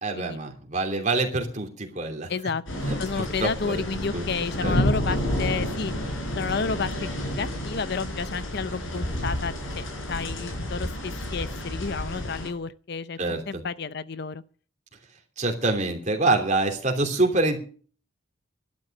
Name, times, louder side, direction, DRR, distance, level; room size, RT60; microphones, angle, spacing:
voice 1, 0.0-2.3 2.9-4.3 4.6-4.7 13.2-13.6 15.4-17.6, right 2 dB, 35° right, 3.0 m, -26 dB
voice 2, 2.3-2.6 3.0-5.9 6.4-7.1 7.4-14.4, left 5 dB, 50° left, 0.5 m, -31 dB
sound 1, 2.7-12.5, equal, 70° left, 4.4 m, -30 dB
12.0 x 12.0 x 6.6 m
head